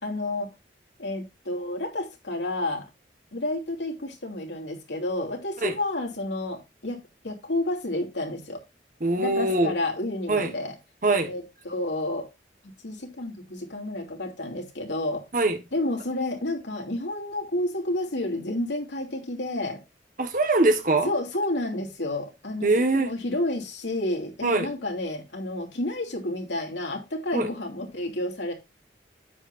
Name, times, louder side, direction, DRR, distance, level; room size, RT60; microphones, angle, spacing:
voice 1, 0.0-0.5 1.0-2.9 3.3-7.0 7.2-8.6 9.2-10.7 11.2-12.3 12.6-15.2 15.7-19.8 21.0-28.5, left 1 dB, 80° left, 2.8 m, -30 dB
voice 2, 9.0-9.7 10.3-10.5 11.0-11.3 15.3-15.6 20.2-21.1 22.6-23.1 24.4-24.7 27.3-27.5, right 2 dB, 45° right, 1.5 m, -22 dB
9.6 x 8.3 x 2.6 m
head